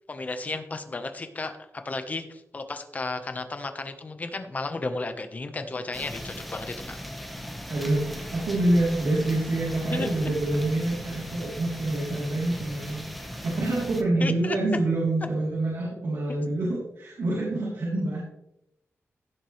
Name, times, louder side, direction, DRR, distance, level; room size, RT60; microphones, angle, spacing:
voice 1, 0.1-1.5 1.8-7.1 9.9-10.1 14.2-14.6, left 3 dB, 30° left, 7 dB, 1.2 m, -33 dB
sound 1, 5.9-14.0, equal, ahead, 1.3 m, -38 dB
voice 2, 7.7-13.1 13.4-18.2, right 2 dB, 75° right, -6 dB, 3.6 m, -26 dB
16.0 x 7.4 x 3.3 m, 0.83 s
wide cardioid pair, 160°, 5 cm